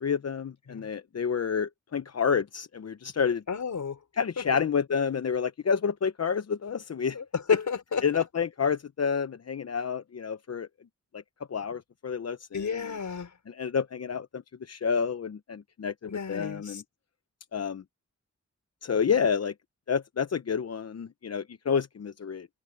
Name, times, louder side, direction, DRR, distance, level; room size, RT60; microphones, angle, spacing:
voice 1, 0.0-3.4 4.2-7.2 8.0-10.7 11.5-12.6 13.5-16.8 17.5-17.8 18.8-19.5 19.9-22.5, left 6 dB, 55° left, 0.8 m, -29 dB
voice 2, 3.5-4.0 4.4-4.6 7.1-8.2 12.5-13.3 16.1-16.8, left 6 dB, 80° left, 5.5 m, -31 dB
cardioid pair, 55°, 29 cm